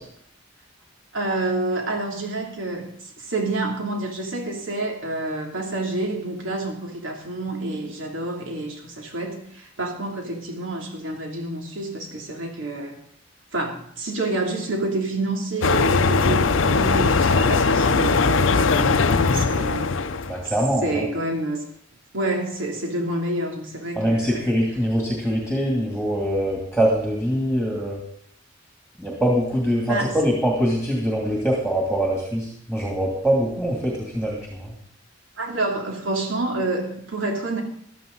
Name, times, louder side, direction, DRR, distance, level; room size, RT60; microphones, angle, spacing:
voice 1, 1.1-2.9 3.2-13.0 13.5-19.9 20.4-20.5 20.8-21.6 22.1-24.5 29.8-30.1 35.4-37.6, right 2 dB, 75° right, 1 dB, 3.0 m, -28 dB
sound 1, 15.6-20.5, left 4 dB, 75° left, 0.7 m, -20 dB
voice 2, 20.3-21.1 24.0-28.0 29.0-34.7, equal, 5° right, -2 dB, 2.7 m, -23 dB
15.0 x 12.5 x 4.0 m, 0.68 s
head